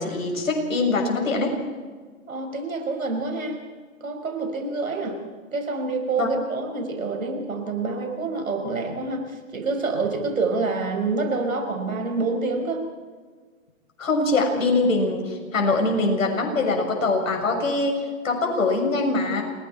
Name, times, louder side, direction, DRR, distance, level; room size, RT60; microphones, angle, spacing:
voice 1, 0.0-1.5 6.2-6.3 14.0-19.4, left 3 dB, 70° left, 2 dB, 7.0 m, -23 dB
voice 2, 2.3-3.6 4.0-5.2 5.5-12.9, right 3 dB, 75° right, 4 dB, 5.7 m, -27 dB
28.5 x 21.5 x 4.5 m, 1.5 s
hypercardioid pair, 130°, 41 cm